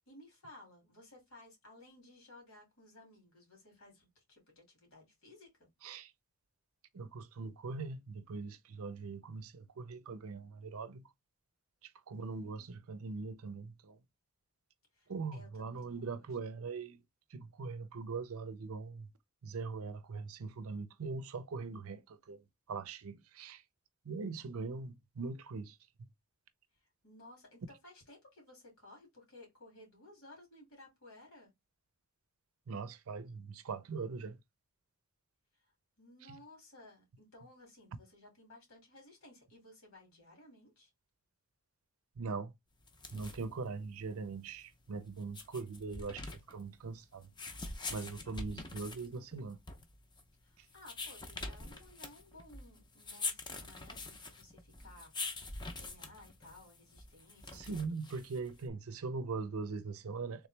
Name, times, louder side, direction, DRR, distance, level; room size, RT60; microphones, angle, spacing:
voice 1, 0.1-5.7 12.1-12.8 14.9-16.3 27.0-31.5 36.0-40.9 50.4-55.1 55.8-58.0, left 1 dB, 80° left, 2.4 m, -58 dB
voice 2, 6.9-11.1 11.8-14.0 15.1-17.0 17.3-19.1 19.4-22.4 22.7-23.6 24.0-26.1 32.7-34.4 36.3-36.4 42.2-42.5 43.1-47.3 47.9-49.6 50.6-50.7 57.5-60.5, right 4 dB, 80° right, 0.5 m, -41 dB
sound 1, 42.8-58.7, left 3 dB, 20° left, 0.6 m, -45 dB
3.5 x 3.0 x 3.2 m
head